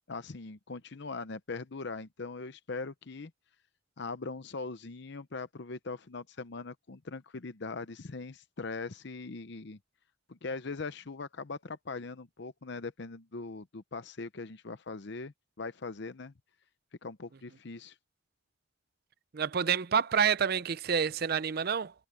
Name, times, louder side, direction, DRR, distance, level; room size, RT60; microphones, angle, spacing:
voice 1, 0.1-3.3 4.0-9.8 10.3-16.3 17.0-17.9, left 3 dB, 60° left, 0.8 m, -41 dB
voice 2, 19.3-21.9, right 7 dB, 50° right, 0.5 m, -28 dB
head